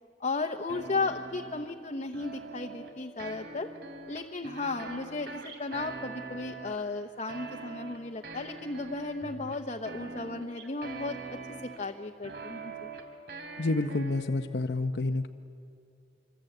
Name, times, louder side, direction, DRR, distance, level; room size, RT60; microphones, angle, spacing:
voice 1, 0.2-3.7 4.1-12.9, left 3 dB, 40° left, 4 dB, 0.9 m, -35 dB
sound 1, 0.7-1.7 2.1-2.9 3.2-6.9 7.3-11.9 12.2-14.2, right 3 dB, 70° right, 3.0 m, -43 dB
voice 2, 13.6-15.3, left 2 dB, 75° left, 7 dB, 0.8 m, -29 dB
25.5 x 25.5 x 8.0 m, 2.5 s
head